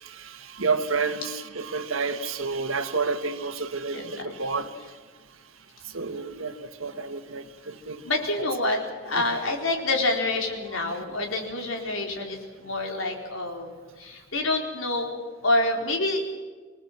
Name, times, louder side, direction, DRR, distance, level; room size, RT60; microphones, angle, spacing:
voice 1, 0.0-4.8 5.8-8.0, right 4 dB, 85° right, 1.7 m, -30 dB
voice 2, 3.9-4.3 8.0-16.3, left 2 dB, 75° left, 4.5 m, -27 dB
25.5 x 19.5 x 7.6 m
head